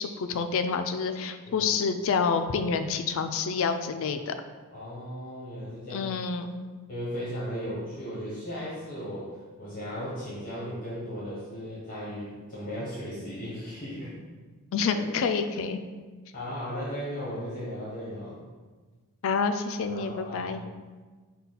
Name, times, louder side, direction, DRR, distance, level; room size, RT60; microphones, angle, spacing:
voice 1, 0.0-4.4 5.9-6.6 14.7-15.8 19.2-20.6, left 5 dB, 65° left, 8 dB, 0.3 m, -28 dB
voice 2, 4.7-6.1 6.9-14.1 14.9-15.0 16.3-18.4 19.8-20.7, equal, 40° left, -8 dB, 1.1 m, -36 dB
5.5 x 2.2 x 4.0 m, 1.4 s
head